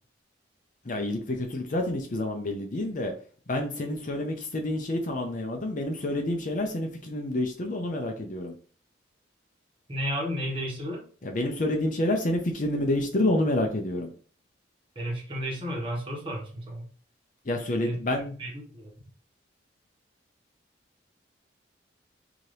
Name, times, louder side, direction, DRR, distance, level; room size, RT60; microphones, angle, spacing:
voice 1, 0.8-3.1 3.5-8.5 11.2-14.1 17.5-18.3, left 1 dB, 45° left, 4 dB, 0.6 m, -28 dB
voice 2, 9.9-11.0 14.9-16.8 17.8-18.0 18.2-18.9, equal, 30° right, -2 dB, 1.3 m, -33 dB
3.9 x 2.8 x 3.3 m, 0.42 s
head